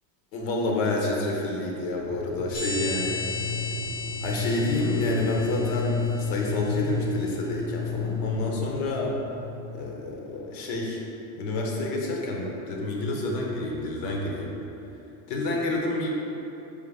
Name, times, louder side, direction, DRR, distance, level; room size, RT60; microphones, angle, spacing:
voice 1, 0.3-3.4 4.2-9.1 9.7-11.0 11.3-14.5 15.3-16.1, left 2 dB, 70° left, -1 dB, 0.9 m, -28 dB
sound 1, 2.0-9.8, left 4 dB, 20° right, 0.5 m, -32 dB
sound 2, 2.5-6.8, left 4 dB, 20° left, 0.7 m, -35 dB
3.7 x 3.4 x 3.4 m, 2.9 s
cardioid pair, 140°, 44 cm